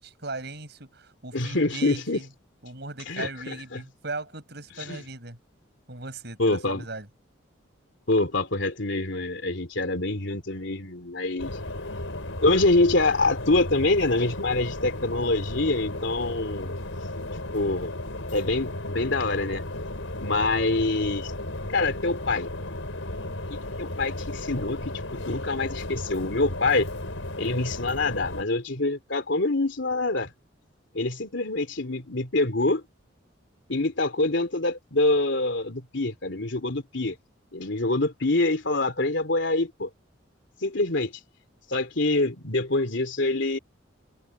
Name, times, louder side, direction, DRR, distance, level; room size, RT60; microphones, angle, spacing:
voice 1, 0.0-2.3 2.6-5.4 5.9-7.1, right 3 dB, 55° right, 7.6 m, -38 dB
voice 2, 1.3-2.2 3.1-3.8 4.9-5.0 6.4-6.8 8.1-11.6 12.4-16.7 17.5-17.9 18.3-19.6 20.2-21.3 21.7-22.5 23.5-25.0 25.3-26.9 27.4-30.3 30.9-32.8 33.7-37.1 37.5-39.9 40.6-41.1 41.7-43.6, left 2 dB, 65° left, 3.1 m, -25 dB
sound 1, 11.4-28.4, left 1 dB, 85° left, 4.8 m, -34 dB
head